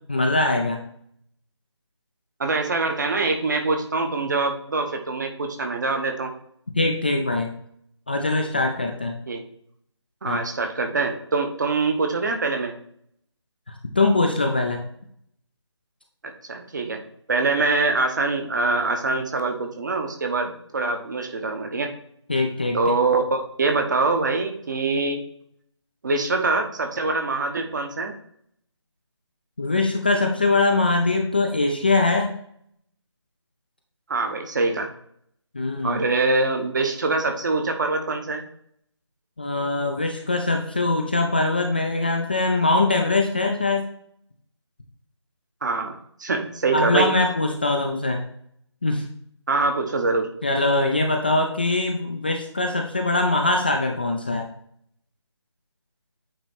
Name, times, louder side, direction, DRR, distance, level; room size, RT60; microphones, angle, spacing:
voice 1, 0.1-0.8 6.8-7.5 8.1-9.2 10.3-10.4 13.7-14.8 22.3-22.8 29.6-32.3 35.5-36.0 39.4-43.9 46.7-48.2 48.8-49.0 50.4-54.5, left 2 dB, 20° left, 2 dB, 0.4 m, -22 dB
voice 2, 2.4-6.3 9.3-9.4 10.2-12.7 16.2-17.0 17.3-21.9 22.7-25.2 26.0-28.1 34.1-34.9 35.8-38.4 45.6-45.9 46.2-47.1 49.5-50.3, right 3 dB, 40° right, 5 dB, 1.0 m, -24 dB
8.9 x 3.0 x 4.3 m, 0.68 s
figure-of-eight pair, 165°, 15 cm